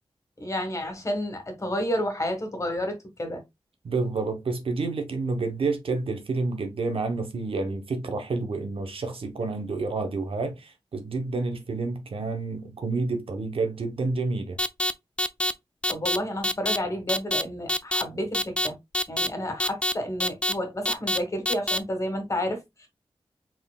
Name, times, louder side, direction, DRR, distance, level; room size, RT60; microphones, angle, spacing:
voice 1, 0.4-3.4 15.9-18.8 19.1-22.9, equal, 35° left, 1.4 m, -30 dB
voice 2, 3.8-14.6, right 3 dB, 80° right, 0.9 m, -29 dB
sound 1, 14.6-14.9 15.2-15.5 15.8-16.2 16.4-16.8 17.1-17.4 17.7-18.0 18.3-18.7 18.9-19.3 19.6-19.9 20.2-20.5 20.9-21.2 21.5-21.8, left 1 dB, 10° left, 0.3 m, -25 dB
4.4 x 3.7 x 2.3 m
wide cardioid pair, 120°, 9 cm